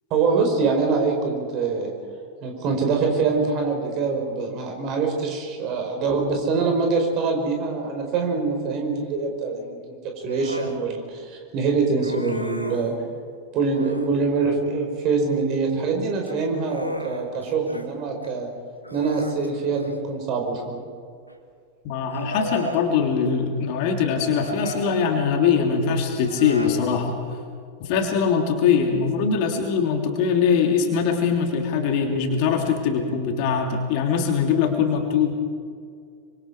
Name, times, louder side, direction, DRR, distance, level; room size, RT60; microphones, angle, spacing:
voice 1, 0.1-1.9 2.4-12.9 13.5-18.5 18.9-20.8, right 4 dB, 40° right, 2 dB, 5.1 m, -24 dB
Human voice, 10.3-10.8 12.0-12.9 13.6-14.2 16.1-17.9 18.2-18.4 18.8-20.1 21.3-21.4 22.0-22.9 24.2-25.1 26.1-26.8, left 1 dB, 85° left, 2.0 m, -35 dB
voice 2, 21.8-27.1 27.8-35.3, left 6 dB, 45° left, 3 dB, 3.1 m, -22 dB
25.0 x 25.0 x 5.0 m, 2.2 s
figure-of-eight pair, 90°, 0 cm